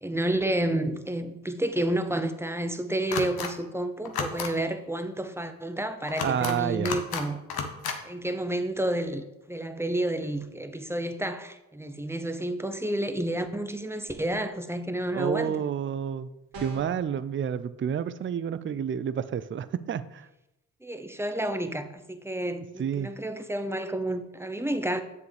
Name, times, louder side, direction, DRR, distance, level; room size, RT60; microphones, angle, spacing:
voice 1, 0.0-7.4 8.0-15.7 20.8-25.0, right 1 dB, 5° right, 0.7 m, -30 dB
sound 1, 3.1-3.5 4.0-4.5 6.1-6.5 6.8-7.2 7.5-8.0, left 5 dB, 70° left, 1.0 m, -31 dB
voice 2, 6.2-7.0 15.1-16.3 16.6-20.3 22.8-23.1, right 8 dB, 35° right, 0.4 m, -29 dB
sound 2, 16.5-17.1, right 3 dB, 70° right, 1.7 m, -41 dB
7.2 x 6.3 x 3.4 m
supercardioid pair, 55°, 38 cm